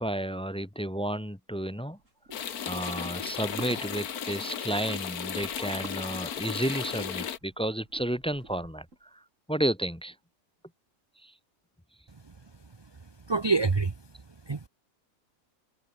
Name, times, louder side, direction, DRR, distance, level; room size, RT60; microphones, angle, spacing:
voice 1, 0.0-2.0 2.6-9.2 9.5-10.1 11.2-11.3, right 1 dB, 5° left, 0.9 m, -32 dB
sound 1, 1.9-9.0, right 2 dB, 55° right, 7.2 m, -48 dB
sound 2, 2.3-7.4, left 8 dB, 85° left, 1.8 m, -35 dB
voice 2, 12.9-14.0 14.5-14.7, right 4 dB, 30° right, 0.5 m, -28 dB
omnidirectional pair, 1.5 m